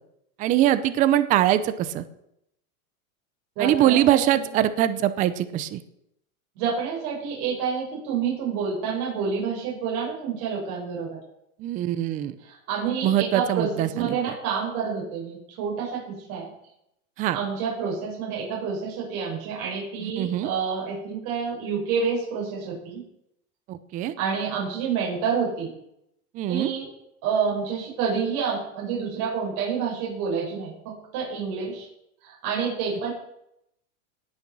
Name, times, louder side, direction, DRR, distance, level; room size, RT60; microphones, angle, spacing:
voice 1, 0.4-2.0 3.6-5.8 11.6-12.3 12.9-14.2 17.2-17.4 20.0-20.5 23.7-24.1 26.3-26.7, right 12 dB, 20° right, 13 dB, 0.5 m, -23 dB
voice 2, 3.6-4.2 6.5-11.2 12.4-16.5 17.3-23.0 24.2-25.7 26.5-26.9 27.2-31.9 32.2-33.1, right 6 dB, 45° right, -3 dB, 6.4 m, -28 dB
18.5 x 6.9 x 6.1 m, 0.79 s
supercardioid pair, 150°, 44 cm